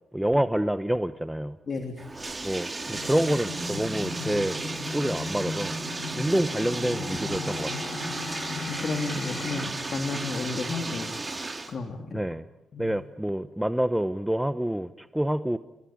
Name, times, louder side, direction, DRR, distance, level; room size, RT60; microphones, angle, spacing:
voice 1, 0.1-1.6 2.4-4.6 4.9-5.8 6.2-7.9 12.1-12.4 12.8-15.6, right 1 dB, 5° right, 12 dB, 1.0 m, -27 dB
voice 2, 1.7-2.1 6.0-6.4 8.7-11.1 11.7-12.2 12.7-13.0, left 4 dB, 45° left, 5 dB, 3.2 m, -33 dB
Bathtub (filling or washing), 2.0-11.7, right 3 dB, 20° right, 3.2 m, -34 dB
sound 1, 2.9-9.7, left 3 dB, 65° left, 3.2 m, -36 dB
30.0 x 22.5 x 8.8 m, 0.92 s
cardioid pair, 80°, 0 cm